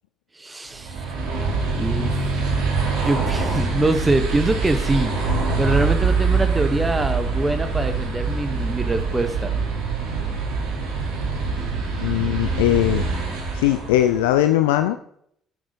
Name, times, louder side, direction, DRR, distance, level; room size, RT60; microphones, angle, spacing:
voice 1, 0.3-1.1 1.7-2.1 3.0-5.1 5.6-9.5, right 2 dB, 20° right, 9 dB, 1.0 m, -24 dB
sound 1, 0.7-14.2, right 4 dB, 85° right, 2.9 m, -24 dB
voice 2, 12.0-13.1 13.5-15.0, left 13 dB, 85° left, 10 dB, 0.4 m, -19 dB
8.6 x 7.9 x 5.2 m, 0.69 s
hypercardioid pair, 60°, 0 cm